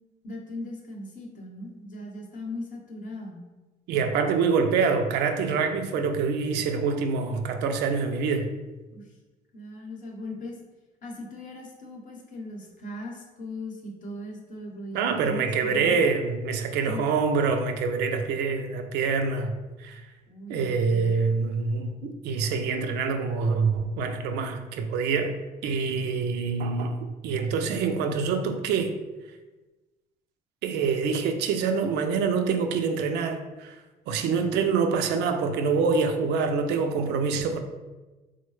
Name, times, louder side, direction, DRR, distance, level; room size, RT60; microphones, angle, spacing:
voice 1, 0.2-3.4 8.9-9.1 9.5-10.6 11.0-16.0 16.8-17.0 20.3-21.1, left 1 dB, 50° left, 1 dB, 0.8 m, -39 dB
voice 2, 3.9-8.5 14.9-19.5 19.8-20.0 20.5-25.4 25.6-27.0 27.2-28.9 30.6-33.8 34.1-37.6, right 5 dB, 80° right, 6 dB, 0.4 m, -25 dB
3.7 x 2.1 x 3.1 m, 1.2 s
cardioid pair, 110°, 17 cm